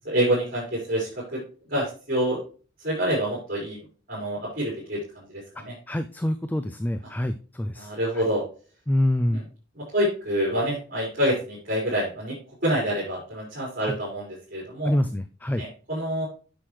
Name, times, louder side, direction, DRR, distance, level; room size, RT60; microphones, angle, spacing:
voice 1, 0.0-1.4 1.7-2.4 2.8-3.8 4.1-5.7 7.8-8.4 9.3-9.4 9.7-12.3 12.6-14.9 15.6-16.2, equal, 45° right, -7 dB, 4.7 m, -27 dB
voice 2, 5.9-8.2 8.9-9.4 13.8-14.0 14.8-15.6, left 1 dB, 10° left, 9 dB, 0.3 m, -26 dB
9.6 x 6.2 x 3.2 m, 0.37 s
head